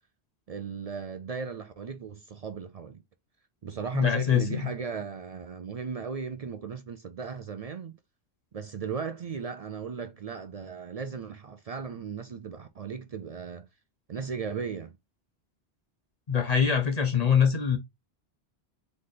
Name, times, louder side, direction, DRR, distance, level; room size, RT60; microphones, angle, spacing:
voice 1, 0.5-3.0 3.6-8.0 8.5-13.7 14.1-15.0, right 6 dB, 55° right, 0.4 m, -36 dB
voice 2, 3.9-4.7 16.3-17.8, left 7 dB, 45° left, 0.7 m, -24 dB
3.9 x 3.3 x 3.8 m
omnidirectional pair, 1.1 m